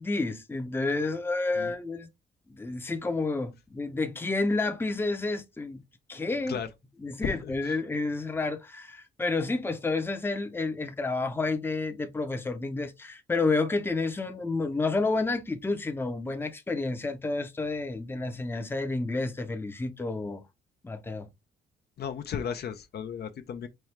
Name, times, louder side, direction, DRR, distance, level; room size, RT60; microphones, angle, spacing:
voice 1, 0.0-2.1 2.5-5.8 6.1-6.6 7.0-20.4 20.8-21.3, left 3 dB, 10° left, 0.6 m, -30 dB
voice 2, 7.2-7.8 22.0-23.7, left 7 dB, 55° left, 0.6 m, -35 dB
4.3 x 2.3 x 3.3 m
cardioid pair, 90°, 20 cm